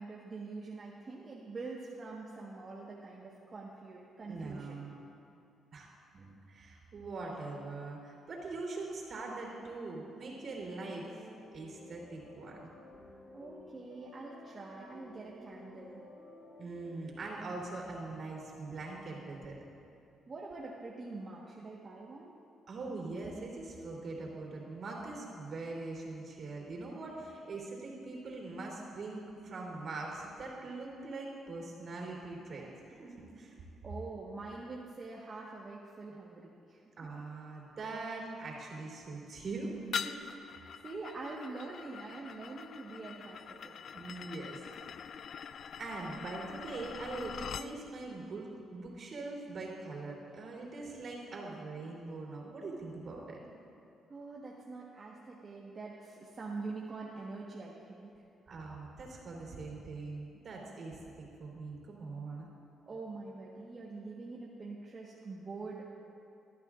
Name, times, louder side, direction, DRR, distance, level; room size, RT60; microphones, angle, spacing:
voice 1, 0.0-4.8 13.3-16.0 20.3-22.4 32.6-32.8 33.8-36.8 40.3-40.5 40.8-43.8 54.1-58.2 62.9-65.9, right 3 dB, 35° right, -4 dB, 1.3 m, -45 dB
voice 2, 4.3-4.9 5.7-5.9 6.1-11.0 11.5-12.7 16.6-19.5 22.7-33.6 37.0-39.7 40.0-40.3 40.6-40.7 43.9-44.8 45.8-53.4 58.5-62.5, right 3 dB, 55° right, -2 dB, 3.4 m, -42 dB
sound 1, 10.3-17.3, left 2 dB, 35° left, 3.0 m, -53 dB
sound 2, 39.9-47.7, left 7 dB, 60° left, 0.4 m, -43 dB
20.0 x 12.5 x 2.5 m, 2.6 s
cardioid pair, 90°, 0 cm